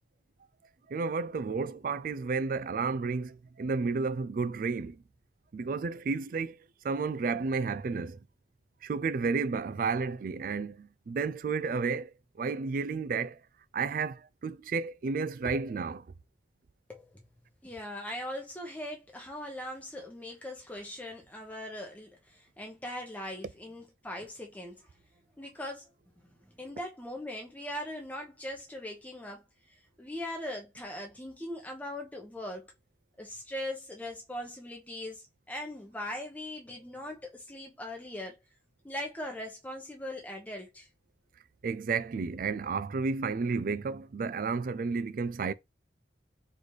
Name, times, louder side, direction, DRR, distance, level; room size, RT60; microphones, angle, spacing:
voice 1, 0.9-5.0 5.5-6.6 6.8-8.2 8.8-13.4 13.7-16.0 41.6-45.5, right 4 dB, 45° right, 0.3 m, -32 dB
voice 2, 17.6-24.9 25.4-25.9 26.4-29.4 30.0-32.7 33.2-38.4 38.8-40.9, left 1 dB, 10° left, 0.9 m, -40 dB
4.1 x 3.1 x 3.2 m
head